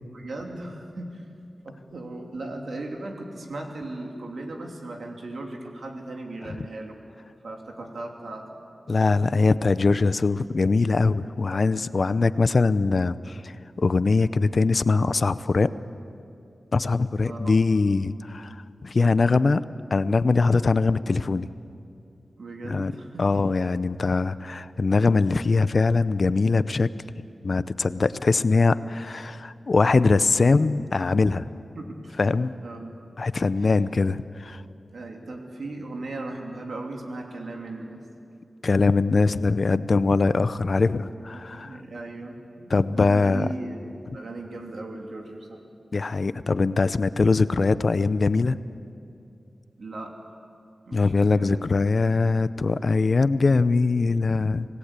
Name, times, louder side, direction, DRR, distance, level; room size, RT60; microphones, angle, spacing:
voice 1, 0.1-1.2 1.6-7.0 7.4-8.6 11.4-11.6 17.2-17.6 22.4-23.3 31.7-32.2 32.6-32.9 33.6-33.7 34.9-38.0 41.3-43.8 44.1-45.6 49.8-50.3 50.8-51.8, right 2 dB, 85° right, 1 dB, 3.0 m, -37 dB
voice 2, 8.9-15.7 16.7-19.6 19.9-21.5 22.7-22.9 23.2-26.9 27.4-31.5 32.2-32.5 33.2-34.6 38.6-41.8 42.7-43.5 45.9-48.6 50.9-54.7, left 3 dB, 55° left, 14 dB, 0.6 m, -22 dB
26.0 x 18.0 x 8.3 m, 2.5 s
wide cardioid pair, 85°, 0 cm